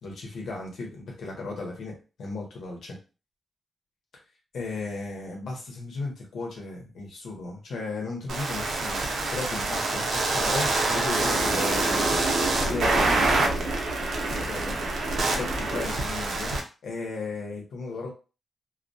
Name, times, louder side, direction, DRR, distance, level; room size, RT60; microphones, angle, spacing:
voice 1, 0.0-3.0 4.5-9.0 9.3-12.2 12.6-13.5 14.2-16.5 16.8-18.1, left 3 dB, 90° left, -1 dB, 0.8 m, -35 dB
sound 1, 8.3-16.6, right 2 dB, 75° right, 0.6 m, -26 dB
2.2 x 2.1 x 2.6 m, 0.32 s
wide cardioid pair, 130°, 0 cm